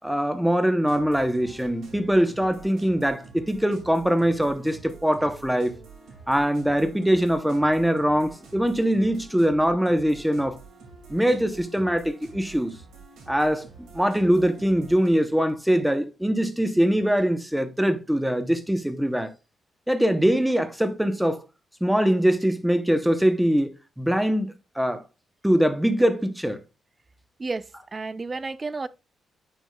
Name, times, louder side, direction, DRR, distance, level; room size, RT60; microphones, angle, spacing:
voice 1, 0.0-5.7 6.3-10.6 11.1-12.8 13.3-13.7 13.9-19.3 19.9-21.4 21.8-23.7 24.0-25.0 25.4-26.6, equal, 5° right, 0.7 m, -22 dB
sound 1, 0.8-15.1, right 3 dB, 85° right, 2.1 m, -47 dB
voice 2, 27.9-28.9, right 3 dB, 25° right, 0.3 m, -31 dB
9.2 x 5.4 x 2.2 m
cardioid pair, 145°, 0 cm